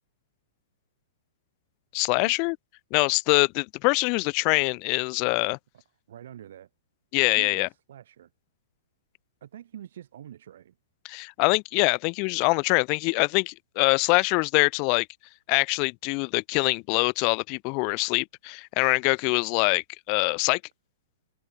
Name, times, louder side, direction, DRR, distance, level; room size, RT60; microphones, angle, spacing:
voice 1, 1.9-2.6 2.9-5.6 7.1-7.7 11.0-15.1 15.5-20.6, left 36 dB, 35° left, 2.1 m, -24 dB
voice 2, 6.1-6.7 7.4-8.3 9.4-10.7, right 11 dB, 65° right, 7.6 m, -45 dB
hypercardioid pair, 160°, 0 cm